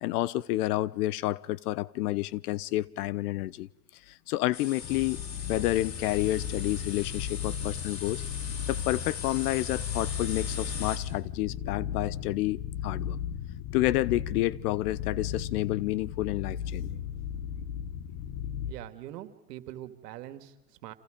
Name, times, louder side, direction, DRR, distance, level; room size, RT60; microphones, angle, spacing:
voice 1, 0.0-3.7 4.1-5.2 5.5-8.2 8.7-12.6 12.8-13.2 13.7-17.0, left 16 dB, 65° left, 1.0 m, -29 dB
sound 1, 4.5-11.0, left 6 dB, 80° left, 5.2 m, -40 dB
sound 2, 4.8-18.7, left 9 dB, 45° left, 1.7 m, -36 dB
voice 2, 18.7-20.9, right 13 dB, 70° right, 2.3 m, -43 dB
29.0 x 27.5 x 5.2 m
hypercardioid pair, 110°, 49 cm